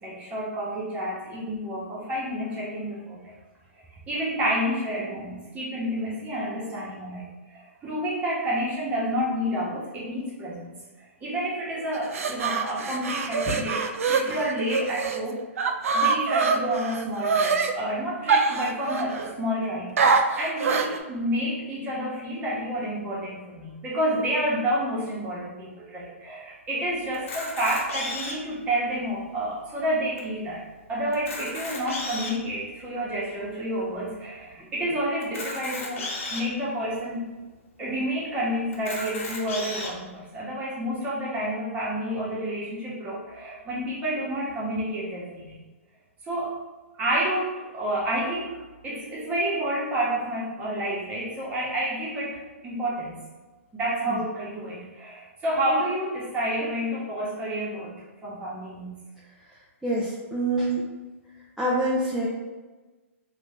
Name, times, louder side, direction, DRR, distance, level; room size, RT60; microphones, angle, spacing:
voice 1, 0.0-3.3 4.1-20.0 20.4-30.6 30.9-37.3 37.8-45.6 46.2-46.6 46.9-48.5 48.8-53.2 53.7-58.0 58.2-58.9, equal, 20° right, -5 dB, 1.1 m, -29 dB
sound 1, 11.9-15.2 15.6-17.7 18.3-19.3 20.0-21.0, right 5 dB, 80° right, 0.4 m, -24 dB
Camera, 27.1-28.5 29.2-29.3 29.5-29.6 30.2-30.3 31.1-32.4 33.1-33.2 35.2-36.4 37.2-37.3 37.5-37.6 38.7-39.9, left 2 dB, 65° left, 0.9 m, -34 dB
voice 2, 59.8-60.8 61.6-62.3, right 1 dB, 5° right, -8 dB, 0.5 m, -26 dB
3.0 x 2.4 x 3.6 m, 1.2 s
hypercardioid pair, 135°, 8 cm